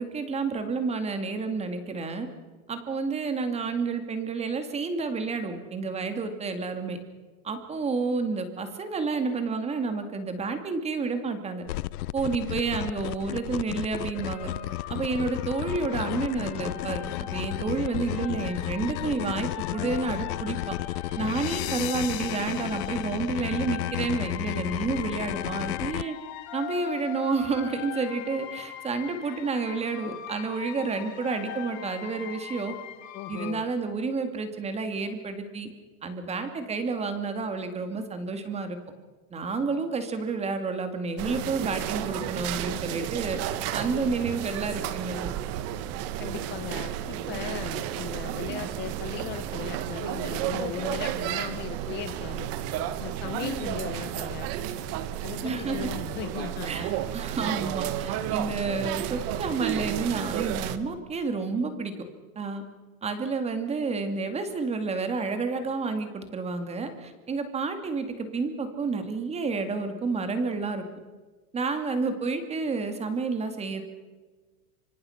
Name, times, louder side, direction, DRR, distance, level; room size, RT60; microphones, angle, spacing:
voice 1, 0.0-2.3 2.7-7.0 7.4-11.6 12.1-14.5 14.9-20.7 21.2-26.2 26.5-32.7 33.3-35.7 36.0-38.8 39.3-45.3 55.4-55.9 56.7-61.9 62.4-62.6 63.0-70.8 71.5-73.8, right 4 dB, 15° right, 8 dB, 2.3 m, -30 dB
sound 1, 11.7-26.0, left 16 dB, 75° left, 0.7 m, -33 dB
sound 2, 14.1-33.5, left 11 dB, 40° left, 2.8 m, -40 dB
voice 2, 33.1-33.6 46.2-52.5 53.0-54.5 55.2-56.9, left 12 dB, 25° left, 10 dB, 0.8 m, -37 dB
sound 3, 41.2-60.8, right 11 dB, 30° right, 1.3 m, -32 dB
26.5 x 25.5 x 5.8 m, 1.3 s
supercardioid pair, 155°, 45 cm